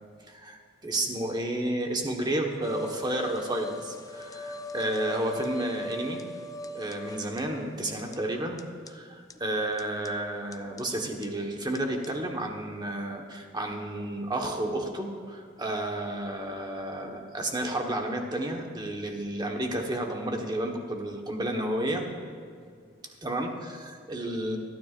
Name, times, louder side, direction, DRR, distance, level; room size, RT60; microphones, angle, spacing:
voice 1, 0.3-6.2 6.7-8.6 8.8-22.0 23.2-24.6, right 1 dB, 25° right, 2 dB, 1.3 m, -31 dB
sound 1, 2.6-7.4 7.8-7.9 8.1-8.2 8.6-8.7 8.9-9.0 9.3-9.4 9.8-10.1 10.5-10.8 11.2-11.3 11.8-11.9 12.0-12.1, left 1 dB, 20° left, 0.4 m, -38 dB
26.0 x 9.5 x 2.5 m, 2.2 s
head